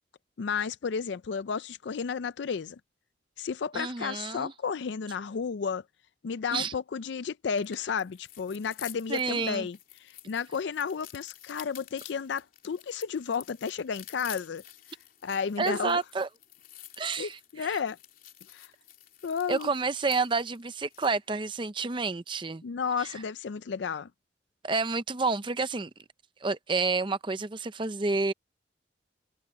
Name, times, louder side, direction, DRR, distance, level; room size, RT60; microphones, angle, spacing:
voice 1, 0.4-2.8 3.4-5.8 6.2-14.6 15.2-16.0 17.2-18.0 18.5-18.7 19.2-19.7 22.6-24.1, left 6 dB, 70° left, 0.4 m, -32 dB
voice 2, 3.7-4.5 6.5-6.7 9.1-9.7 15.6-16.3 17.0-17.7 19.5-22.6 23.0-23.1 24.6-25.9 26.4-28.3, right 4 dB, 25° right, 0.5 m, -29 dB
sound 1, 7.5-21.2, left 12 dB, 50° left, 3.4 m, -50 dB
head